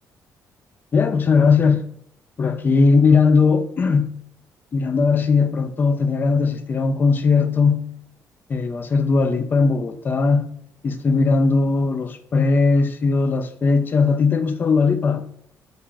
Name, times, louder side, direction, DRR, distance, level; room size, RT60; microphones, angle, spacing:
voice 1, 0.9-1.8 2.4-4.2 4.7-7.9 8.5-10.5 10.8-15.3, left 4 dB, 30° left, 0.3 m, -18 dB
3.3 x 2.3 x 3.9 m
cardioid pair, 135°, 7 cm